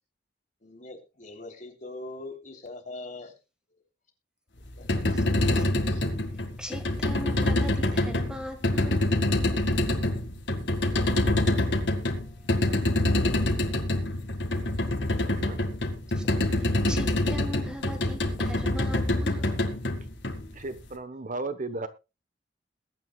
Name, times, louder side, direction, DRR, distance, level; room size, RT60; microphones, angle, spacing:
voice 1, 0.6-3.4 4.8-4.9 5.9-6.0, left 2 dB, 45° left, 3.5 m, -41 dB
sound 1, 4.7-20.8, left 1 dB, 75° left, 2.1 m, -26 dB
voice 2, 5.0-5.6 6.6-9.1 12.1-12.3 16.1-19.6, left 1 dB, 5° right, 1.7 m, -40 dB
voice 3, 15.3-15.6 20.5-21.9, right 3 dB, 45° right, 1.2 m, -35 dB
21.5 x 9.6 x 2.4 m
head